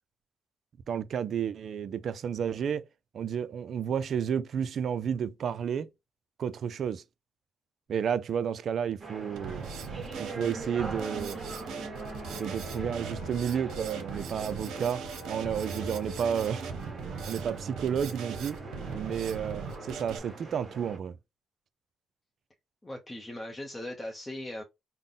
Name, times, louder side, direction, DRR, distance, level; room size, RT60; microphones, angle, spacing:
voice 1, 0.9-2.8 3.1-5.9 6.4-7.0 7.9-9.7 10.2-11.4 12.3-16.6 17.3-18.6 18.9-21.2, right 8 dB, 60° right, 0.3 m, -31 dB
sound 1, 9.0-21.0, right 3 dB, 35° right, 1.4 m, -43 dB
Drum kit, 9.4-20.2, right 5 dB, 85° right, 0.7 m, -39 dB
Wind instrument woodwind instrument, 10.4-14.1 14.3-19.7, left 7 dB, 80° left, 1.1 m, -52 dB
voice 2, 22.8-24.6, left 1 dB, 15° left, 0.6 m, -39 dB
3.8 x 2.0 x 3.6 m
cardioid pair, 90°, 0 cm